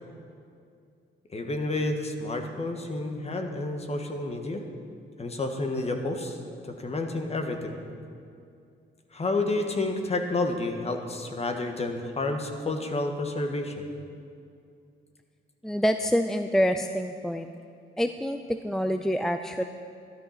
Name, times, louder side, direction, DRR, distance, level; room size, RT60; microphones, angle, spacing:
voice 1, 1.3-4.6 5.2-6.4 6.6-7.8 9.1-13.8, left 2 dB, 30° left, 4 dB, 1.6 m, -30 dB
voice 2, 15.6-17.5 18.0-19.6, equal, ahead, 7 dB, 0.5 m, -26 dB
12.5 x 12.5 x 5.8 m, 2.4 s
cardioid pair, 90°, 20 cm